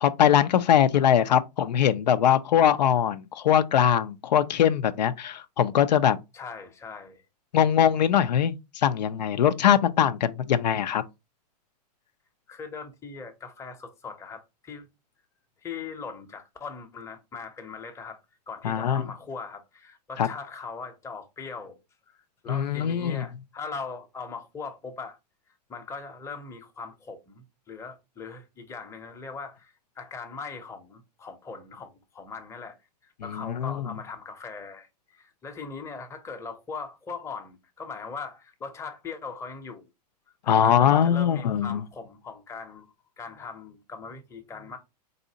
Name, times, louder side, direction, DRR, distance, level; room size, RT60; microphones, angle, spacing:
voice 1, 0.0-6.2 7.5-11.0 18.6-19.0 20.2-20.3 22.5-23.2 33.2-33.9 40.5-41.8, left 9 dB, 90° left, 0.5 m, -22 dB
voice 2, 6.3-7.2 12.5-14.9 15.6-18.2 18.5-21.8 22.1-25.2 25.7-32.8 33.0-39.9 40.4-42.9 43.2-44.8, left 5 dB, 15° left, 0.7 m, -40 dB
4.0 x 2.6 x 2.7 m
hypercardioid pair, 130°, 21 cm